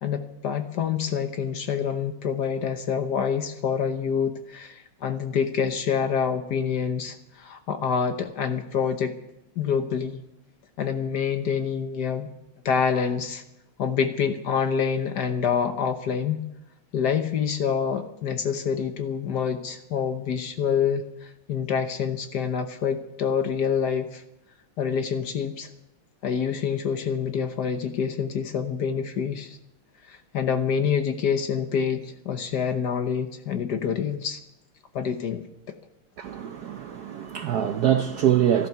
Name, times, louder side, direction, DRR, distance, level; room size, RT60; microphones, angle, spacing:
voice 1, 0.0-9.1 9.6-10.2 10.8-12.3 12.6-13.4 13.8-16.4 16.9-24.2 24.8-25.7 26.2-29.6 30.1-34.4 34.9-35.8, left 7 dB, 60° left, 1.4 m, -27 dB
voice 2, 36.2-38.7, right 10 dB, 70° right, 1.0 m, -24 dB
14.5 x 12.0 x 6.7 m
omnidirectional pair, 2.3 m